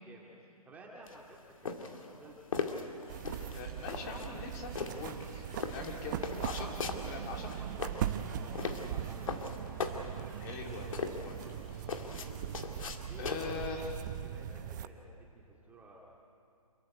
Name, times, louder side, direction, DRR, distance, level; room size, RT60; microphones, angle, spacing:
voice 1, 0.6-2.7 7.6-7.7 8.3-9.6 11.7-12.4 13.1-13.7 14.2-16.0, right 2 dB, 10° right, -3 dB, 2.2 m, -54 dB
sound 1, 1.1-13.8, left 5 dB, 60° left, 2.3 m, -39 dB
sound 2, 3.0-12.7, equal, 15° left, 5.3 m, -58 dB
sound 3, 3.1-14.9, right 10 dB, 30° right, 0.7 m, -40 dB
voice 2, 3.5-6.8 7.0-7.5 10.1-10.9 11.2-11.4 11.7-11.8 13.1-14.0, left 4 dB, 30° left, 0 dB, 3.2 m, -42 dB
27.5 x 15.0 x 9.6 m, 2.6 s
hypercardioid pair, 145°, 19 cm